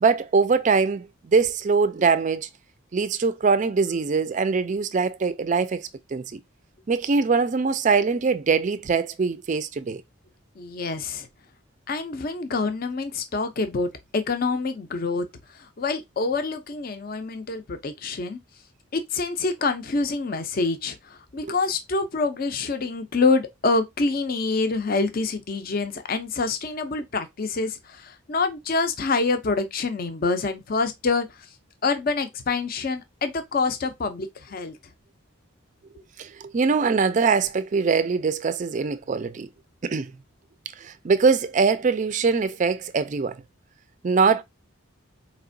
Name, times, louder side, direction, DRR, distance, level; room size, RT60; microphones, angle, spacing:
voice 1, 0.0-2.5 2.9-6.4 6.9-10.0 21.4-21.5 36.2-39.5 39.8-40.1 40.8-43.3 44.0-44.4, right 5 dB, 40° right, 0.3 m, -22 dB
voice 2, 10.6-11.3 11.9-15.3 15.8-18.4 18.9-31.3 31.8-34.8, left 3 dB, 45° left, 0.5 m, -26 dB
4.2 x 2.9 x 2.6 m
head